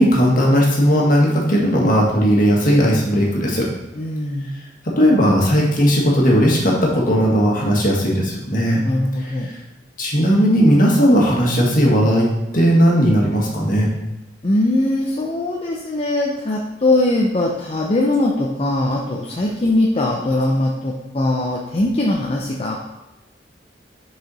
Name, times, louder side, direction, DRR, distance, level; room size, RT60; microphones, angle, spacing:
voice 1, 0.0-3.7 5.0-8.8 9.2-9.6 10.0-12.3 12.5-13.9, equal, 50° left, -2 dB, 1.7 m, -16 dB
voice 2, 3.9-4.5 8.8-9.5 14.4-22.8, left 1 dB, 35° left, -2 dB, 0.6 m, -21 dB
6.5 x 4.9 x 4.2 m, 1.0 s
head